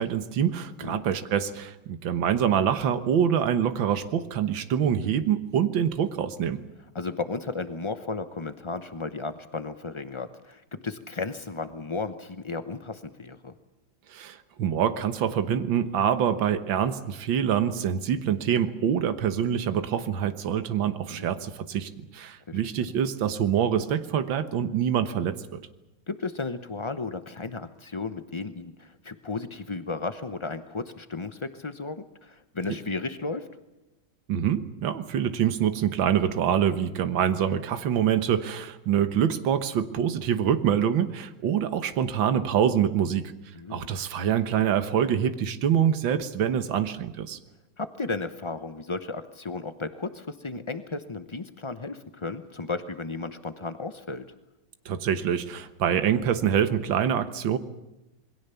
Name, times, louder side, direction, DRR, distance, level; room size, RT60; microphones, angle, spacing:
voice 1, 0.0-6.6 14.1-25.6 34.3-43.3 43.7-47.4 54.9-57.6, right 9 dB, 70° right, 10 dB, 2.0 m, -25 dB
voice 2, 6.9-13.5 21.1-21.3 22.5-22.6 26.1-33.5 43.6-43.9 47.8-54.3, left 3 dB, 45° left, 10 dB, 0.3 m, -34 dB
27.5 x 22.0 x 7.0 m, 0.97 s
omnidirectional pair, 2.2 m